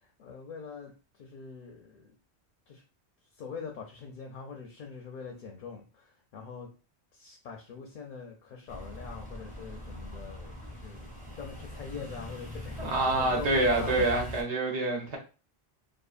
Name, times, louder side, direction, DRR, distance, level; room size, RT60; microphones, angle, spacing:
voice 1, 0.2-0.9 1.2-2.1 2.7-2.8 3.4-6.7 7.1-14.1, left 5 dB, 60° left, 0.6 m, -43 dB
sound 1, 8.7-14.4, equal, 10° right, 0.5 m, -41 dB
voice 2, 12.8-15.2, right 2 dB, 85° right, 1.1 m, -27 dB
2.7 x 2.5 x 2.4 m
omnidirectional pair, 1.1 m